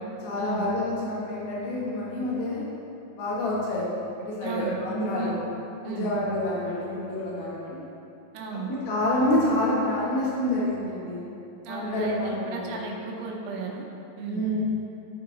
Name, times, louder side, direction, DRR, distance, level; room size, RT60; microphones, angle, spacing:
voice 1, 0.2-2.7 3.1-3.9 4.3-5.3 5.8-7.9 8.7-11.3 11.7-12.8 14.3-14.6, left 1 dB, 60° left, -7 dB, 3.0 m, -28 dB
voice 2, 4.4-4.8 5.2-5.4 5.8-6.1 8.3-8.7 11.6-13.8 14.2-14.5, right 5 dB, 80° right, 0 dB, 3.1 m, -34 dB
13.0 x 4.9 x 2.9 m, 2.8 s
omnidirectional pair, 5.6 m